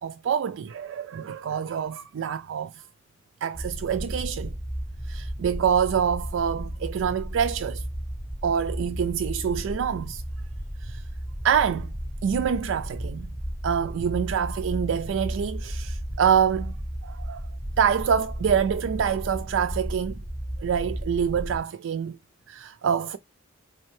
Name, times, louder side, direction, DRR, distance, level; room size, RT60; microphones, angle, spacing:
voice 1, 0.0-2.8 3.4-4.5 5.1-7.8 8.4-10.2 10.8-11.0 11.4-11.9 12.2-13.3 13.6-16.8 17.0-17.4 17.8-20.2 20.6-22.2 22.5-23.2, right 7 dB, 70° right, 0.3 m, -26 dB
sound 1, 3.5-21.6, equal, 5° right, 0.5 m, -34 dB
4.4 x 3.3 x 3.1 m
head